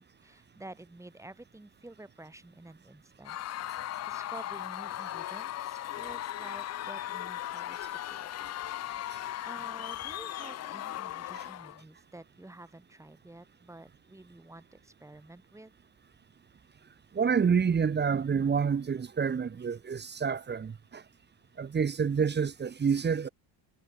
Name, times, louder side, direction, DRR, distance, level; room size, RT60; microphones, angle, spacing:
voice 1, 0.0-3.4 3.7-8.5 9.5-15.7, right 2 dB, 5° right, 5.5 m, -50 dB
Screaming / Cheering / Crowd, 3.2-11.8, left 13 dB, 35° left, 0.7 m, -38 dB
voice 2, 17.1-21.0 21.6-23.3, right 6 dB, 20° right, 2.4 m, -28 dB
cardioid pair, 160°, 45 cm